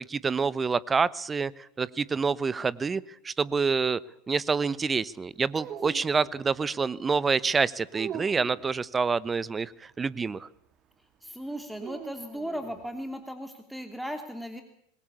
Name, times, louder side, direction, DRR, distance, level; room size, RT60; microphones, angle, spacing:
voice 1, 0.1-1.5 1.8-4.0 4.3-10.5, right 5 dB, 20° right, 21 dB, 0.9 m, -27 dB
sound 1, 5.5-6.6 7.9-8.7 11.8-12.8, right 8 dB, 35° right, 2.1 m, -41 dB
voice 2, 11.2-14.6, equal, ahead, 7 dB, 2.9 m, -36 dB
25.0 x 21.5 x 8.5 m, 0.70 s
figure-of-eight pair, 85°, 0 cm